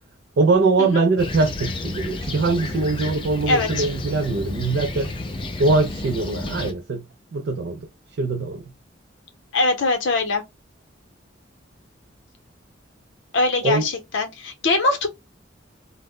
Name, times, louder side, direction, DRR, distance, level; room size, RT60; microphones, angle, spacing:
voice 1, 0.4-5.1 5.6-7.0 7.3-7.9 8.2-8.6 13.6-13.9, right 3 dB, 55° right, 0.3 m, -22 dB
Fixed-wing aircraft airplane, 1.2-6.7, left 2 dB, 25° left, 0.4 m, -31 dB
voice 2, 3.5-3.9 9.5-10.4 13.3-15.1, left 3 dB, 75° left, 0.7 m, -22 dB
2.0 x 2.0 x 3.5 m
head